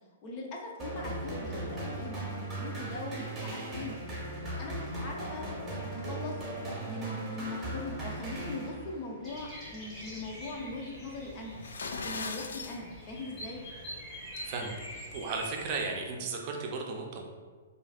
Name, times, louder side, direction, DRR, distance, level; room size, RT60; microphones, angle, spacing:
voice 1, 0.2-4.0 4.6-5.5 5.9-6.4 6.8-13.6, left 2 dB, 35° left, -1 dB, 0.7 m, -41 dB
sound 1, 0.8-9.1, right 1 dB, 15° right, 1.3 m, -38 dB
Bird vocalization bird call bird song, 9.2-15.9, equal, 15° left, 1.3 m, -45 dB
sound 2, 11.5-12.8, left 4 dB, 75° left, 0.4 m, -38 dB
voice 2, 14.4-17.3, right 4 dB, 40° right, 1 dB, 0.6 m, -35 dB
4.8 x 2.6 x 2.4 m, 1.5 s
hypercardioid pair, 120°, 0 cm